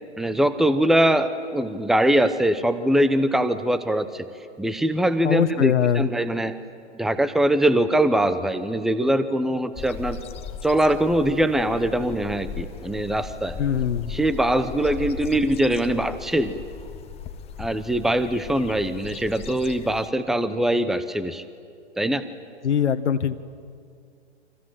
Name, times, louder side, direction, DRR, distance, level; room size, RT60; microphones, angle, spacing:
voice 1, 0.2-4.3 4.6-6.6 6.9-10.2 10.6-13.6 14.1-16.5 17.6-21.4 22.0-22.2, right 1 dB, ahead, 12 dB, 0.8 m, -22 dB
voice 2, 5.2-6.1 13.6-14.1 22.6-23.4, left 8 dB, 80° left, 11 dB, 1.7 m, -22 dB
sound 1, 9.7-20.1, left 7 dB, 15° left, 1.2 m, -38 dB
30.0 x 25.5 x 7.7 m, 2.3 s
hypercardioid pair, 140°, 34 cm